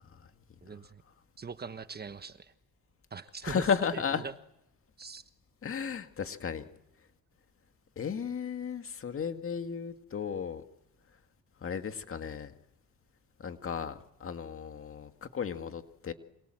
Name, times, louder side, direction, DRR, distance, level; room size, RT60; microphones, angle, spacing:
voice 1, 0.6-1.0 1.4-2.5 3.1-3.7 3.9-4.3 5.0-5.2, right 5 dB, 30° right, 11 dB, 1.2 m, -41 dB
voice 2, 3.4-4.2 5.6-6.6 8.0-10.6 11.6-12.5 13.4-16.1, left 6 dB, 45° left, 7 dB, 2.1 m, -34 dB
27.5 x 26.5 x 7.8 m, 0.82 s
cardioid pair, 90°, 30 cm